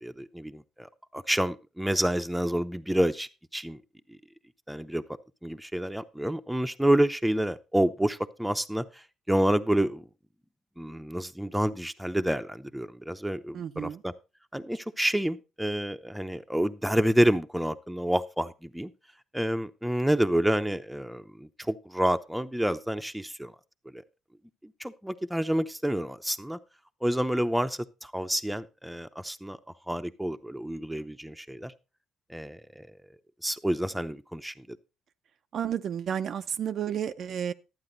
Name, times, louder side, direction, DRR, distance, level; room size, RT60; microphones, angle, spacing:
voice 1, 0.0-0.9 1.1-3.8 4.7-5.0 5.4-8.8 9.3-10.0 10.8-14.1 14.5-18.9 19.3-23.5 23.9-24.0 24.8-26.6 27.0-29.6 29.9-31.7 32.3-33.0 33.4-34.8, right 1 dB, 5° right, 0.7 m, -28 dB
voice 2, 13.5-14.0 35.5-37.5, right 9 dB, 60° right, 0.5 m, -31 dB
12.0 x 8.7 x 4.0 m
cardioid pair, 95°, 0 cm